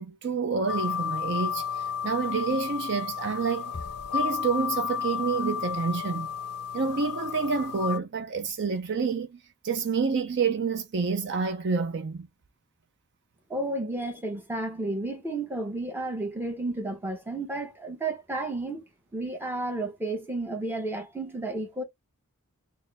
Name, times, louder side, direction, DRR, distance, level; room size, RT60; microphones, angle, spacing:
voice 1, 0.0-3.7 4.1-6.3 6.7-9.4 9.6-12.3, right 5 dB, 50° right, 0.5 m, -28 dB
sound 1, 0.7-8.0, left 7 dB, 85° left, 0.4 m, -32 dB
Bass drum, 3.7-5.1, left 2 dB, 20° left, 1.0 m, -45 dB
voice 2, 13.5-18.8 19.1-21.8, right 2 dB, 10° right, 0.9 m, -32 dB
4.3 x 2.0 x 3.3 m
head